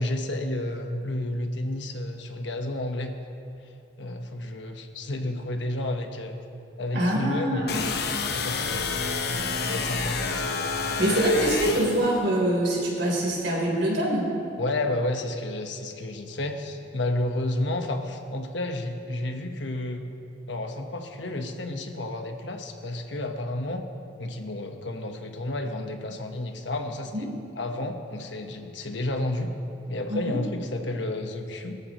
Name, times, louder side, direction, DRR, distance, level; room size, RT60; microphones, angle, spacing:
voice 1, 0.0-3.1 4.0-6.4 6.8-8.0 8.3-10.4 14.6-20.1 20.5-23.9 24.2-27.3 27.6-29.5 29.9-31.8, left 1 dB, 80° left, 4 dB, 1.2 m, -31 dB
voice 2, 6.9-7.8 11.0-14.3 27.1-27.3 30.1-30.4, right 1 dB, 80° right, -3 dB, 3.9 m, -24 dB
sound 1, 7.7-12.1, left 4 dB, 60° left, 0.9 m, -29 dB
20.5 x 13.5 x 3.1 m, 2.6 s
head